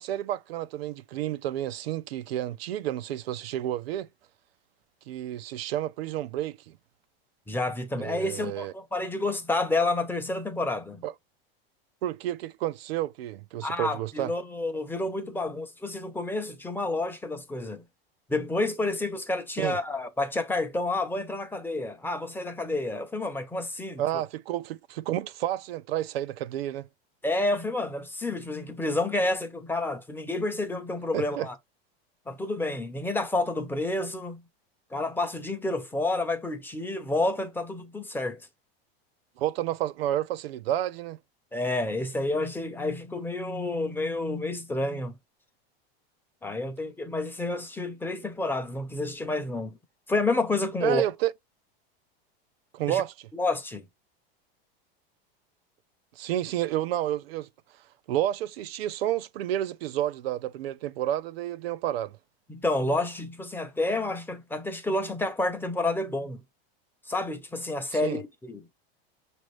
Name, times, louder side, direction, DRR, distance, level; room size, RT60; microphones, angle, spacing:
voice 1, 0.0-4.1 5.1-6.8 8.0-8.7 11.0-11.1 12.0-14.3 19.6-19.8 24.0-26.9 31.1-31.5 39.4-41.2 50.8-51.3 52.7-53.1 56.2-57.5 58.1-62.2 68.0-68.2, right 12 dB, 90° right, 0.6 m, -30 dB
voice 2, 7.5-11.0 13.6-17.8 18.3-24.0 27.2-31.5 32.3-34.4 34.9-38.4 41.5-45.1 46.4-49.8 50.1-51.0 52.9-53.0 53.3-53.9 62.5-66.4 67.1-68.6, left 2 dB, 5° left, 0.6 m, -29 dB
6.1 x 2.7 x 3.1 m
supercardioid pair, 140°, 29 cm